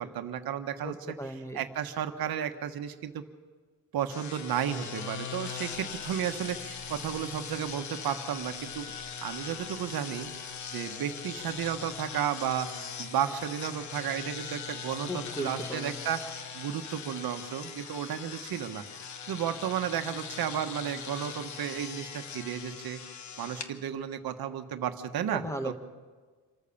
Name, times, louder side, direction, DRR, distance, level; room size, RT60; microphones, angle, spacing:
voice 1, 0.0-1.1 1.5-3.2 3.9-8.9 9.2-10.3 10.7-12.7 13.0-23.0 23.4-25.7, right 9 dB, 65° right, 7 dB, 1.3 m, -33 dB
voice 2, 0.8-1.6 15.1-16.0 25.3-25.7, equal, 5° left, 7 dB, 1.3 m, -36 dB
sound 1, 4.1-23.7, left 6 dB, 45° left, 1.3 m, -41 dB
27.0 x 14.0 x 7.1 m, 1.4 s
cardioid pair, 175°, 39 cm